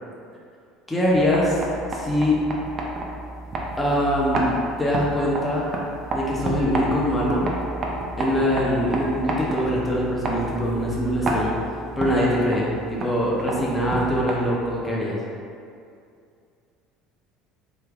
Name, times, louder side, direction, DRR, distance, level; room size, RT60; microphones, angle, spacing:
voice 1, 0.9-1.6 1.9-2.4 3.8-5.6 6.1-7.5 8.2-11.5 12.0-15.2, equal, 10° left, -6 dB, 0.6 m, -23 dB
sound 1, 1.0-14.8, right 2 dB, 40° right, 0.5 m, -31 dB
3.2 x 2.7 x 2.3 m, 2.4 s
hypercardioid pair, 75°, 0 cm